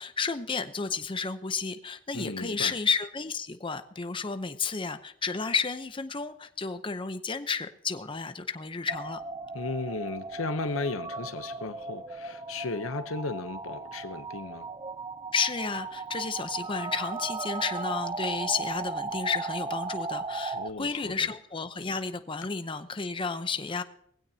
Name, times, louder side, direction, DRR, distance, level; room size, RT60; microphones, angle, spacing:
voice 1, 0.0-9.2 15.3-23.8, left 5 dB, 25° left, 0.7 m, -32 dB
voice 2, 2.1-2.7 9.5-14.7 20.5-21.3, left 3 dB, 90° left, 0.8 m, -35 dB
sound 1, 8.9-20.7, right 4 dB, 20° right, 0.5 m, -36 dB
20.0 x 16.0 x 2.8 m
head